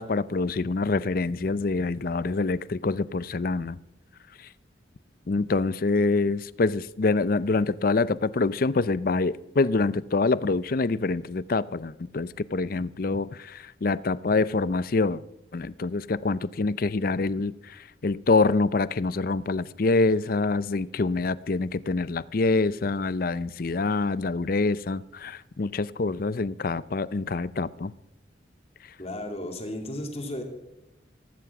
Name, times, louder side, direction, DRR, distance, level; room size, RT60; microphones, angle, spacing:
voice 1, 0.0-3.8 5.3-15.2 15.5-17.5 18.0-27.9, left 3 dB, 50° left, 0.5 m, -26 dB
voice 2, 29.0-30.4, left 1 dB, 35° left, 2.6 m, -34 dB
15.5 x 14.5 x 6.0 m
head